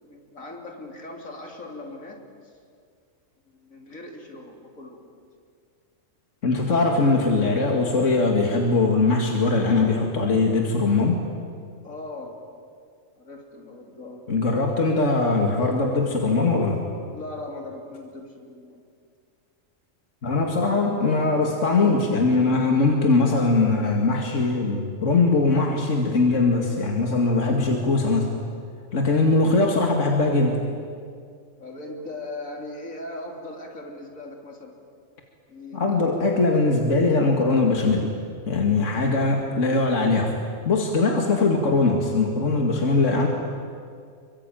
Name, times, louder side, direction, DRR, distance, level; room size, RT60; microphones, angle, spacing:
voice 1, 0.0-2.5 3.5-5.2 11.8-12.4 13.2-14.3 17.1-18.8 31.6-34.8 35.5-36.0, left 2 dB, 85° left, 2 dB, 3.7 m, -39 dB
voice 2, 6.4-11.2 14.3-16.8 20.2-28.3 28.9-30.6 35.7-38.1 38.5-40.3 40.7-43.3, left 3 dB, 65° left, 2 dB, 2.5 m, -21 dB
27.0 x 24.0 x 9.2 m, 2.2 s
omnidirectional pair, 1.4 m